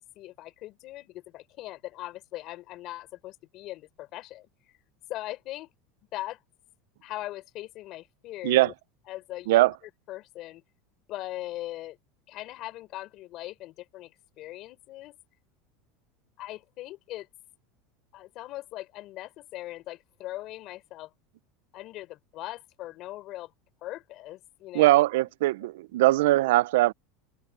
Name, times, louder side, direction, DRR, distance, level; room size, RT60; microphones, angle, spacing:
voice 1, 0.0-4.5 5.1-5.7 6.1-6.4 7.0-8.7 9.1-9.7 10.1-10.6 11.1-12.0 12.3-14.1 14.4-15.2 16.4-17.3 18.1-21.1 21.7-23.5 23.8-25.0 25.5-25.7, left 16 dB, 40° left, 4.9 m, -40 dB
voice 2, 24.7-26.9, right 17 dB, 75° right, 0.5 m, -21 dB
supercardioid pair, 170°, 0 cm